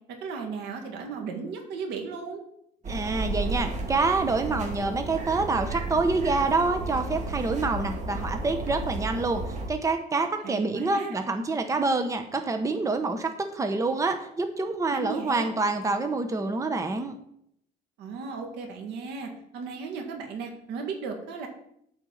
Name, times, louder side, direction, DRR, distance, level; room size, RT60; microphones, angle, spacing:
voice 1, 0.1-2.4 10.4-11.2 14.9-15.5 18.0-21.5, right 5 dB, 85° right, 3 dB, 2.1 m, -35 dB
sound 1, 2.8-9.7, right 3 dB, 45° right, 1.9 m, -33 dB
voice 2, 2.9-17.1, right 3 dB, 20° right, 6 dB, 0.9 m, -27 dB
8.9 x 4.5 x 7.3 m, 0.73 s
cardioid pair, 110°, 17 cm